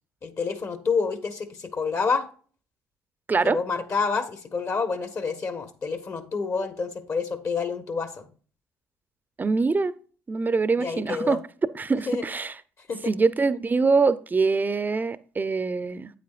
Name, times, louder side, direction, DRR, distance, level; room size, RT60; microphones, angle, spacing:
voice 1, 0.2-2.3 3.4-8.3 10.8-11.4 12.1-12.2 12.9-13.1, left 5 dB, 45° left, 9 dB, 1.3 m, -28 dB
voice 2, 9.4-9.9 10.3-11.4 11.7-12.5 13.1-16.1, right 4 dB, 25° right, 15 dB, 0.6 m, -24 dB
8.6 x 8.5 x 2.5 m, 0.40 s
hypercardioid pair, 65°, 7 cm